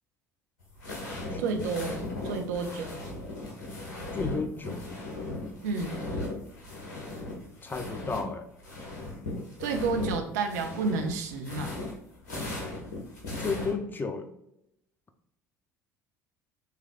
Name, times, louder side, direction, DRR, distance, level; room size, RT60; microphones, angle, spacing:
sound 1, 0.6-8.3 8.5-13.7, left 2 dB, 70° left, 1.5 m, -37 dB
voice 1, 1.4-2.9 5.6-6.0 9.6-11.7, right 4 dB, 65° right, 5 dB, 0.7 m, -30 dB
voice 2, 4.1-4.8 7.6-8.5 13.4-14.3, left 4 dB, 20° left, 7 dB, 0.6 m, -32 dB
6.6 x 3.2 x 2.4 m, 0.80 s
figure-of-eight pair, 60°, 9 cm